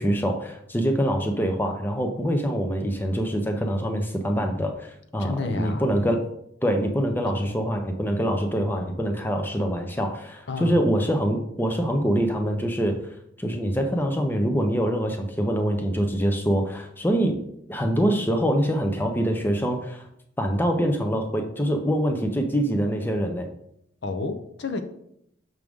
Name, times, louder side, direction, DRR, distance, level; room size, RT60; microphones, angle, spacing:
voice 1, 0.0-6.2 6.6-13.0 13.4-17.4 17.7-20.1 20.4-23.5, equal, 10° left, 0.6 m, -24 dB
voice 2, 5.2-5.9 7.4-7.6 10.5-10.8 24.0-24.8, left 3 dB, 60° left, 0.7 m, -30 dB
6.4 x 6.1 x 3.6 m
head